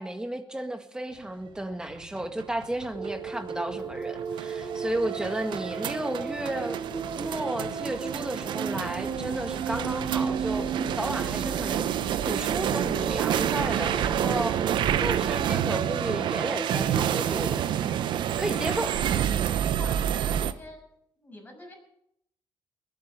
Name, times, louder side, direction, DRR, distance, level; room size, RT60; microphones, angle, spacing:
voice 1, 0.0-6.8 7.2-11.8 12.2-17.7 18.4-19.4, right 1 dB, 10° right, 7 dB, 1.8 m, -33 dB
sound 1, 1.9-20.5, right 10 dB, 80° right, 0.8 m, -29 dB
sound 2, 2.9-17.5, right 6 dB, 60° right, 3.8 m, -35 dB
voice 2, 18.5-19.0 19.7-20.9 21.1-21.7, left 2 dB, 20° left, 0 dB, 6.6 m, -46 dB
21.0 x 8.8 x 6.9 m, 0.76 s
cardioid pair, 105°, 8 cm